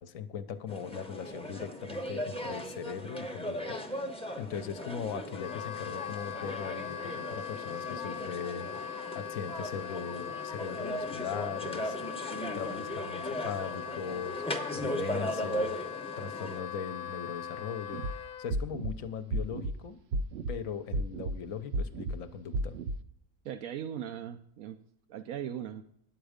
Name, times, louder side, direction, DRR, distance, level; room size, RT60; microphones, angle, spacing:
voice 1, 0.0-12.0 12.5-15.8 16.2-20.0 20.5-22.8, left 7 dB, 75° left, 11 dB, 1.1 m, -39 dB
sound 1, 0.7-16.6, equal, 5° left, 0.7 m, -38 dB
Wind instrument woodwind instrument, 5.3-18.5, left 9 dB, 90° left, 1.1 m, -40 dB
sound 2, 17.9-18.1 18.5-18.9 19.3-19.7 20.1-20.5 20.9-21.3 21.7-22.1 22.5-23.0, right 2 dB, 60° right, 0.7 m, -32 dB
voice 2, 23.4-24.8 25.1-25.8, right 9 dB, 80° right, 6 dB, 1.0 m, -38 dB
10.0 x 8.0 x 5.0 m, 0.69 s
omnidirectional pair, 1.5 m